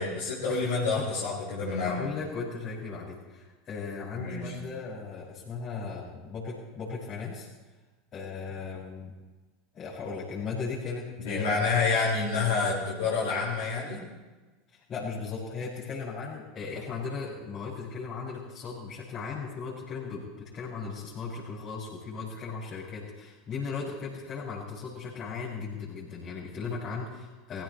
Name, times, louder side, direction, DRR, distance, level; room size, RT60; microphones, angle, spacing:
voice 1, 0.0-2.0 4.1-4.5 11.2-14.0, left 4 dB, 70° left, -8 dB, 5.1 m, -28 dB
voice 2, 1.8-7.5 8.1-9.1 9.7-11.6 14.7-27.6, left 5 dB, 40° left, -9 dB, 6.5 m, -37 dB
21.0 x 16.5 x 3.2 m, 1.2 s
hypercardioid pair, 80°, 0 cm